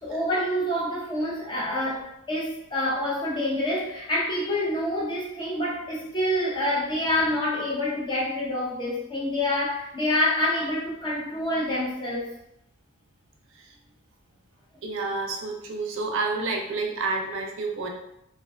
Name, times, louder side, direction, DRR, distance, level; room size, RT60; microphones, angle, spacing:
voice 1, 0.0-12.3, left 1 dB, 20° left, -4 dB, 0.5 m, -27 dB
voice 2, 14.8-17.9, right 3 dB, 60° right, 1 dB, 0.4 m, -29 dB
2.4 x 2.2 x 2.4 m, 0.80 s
head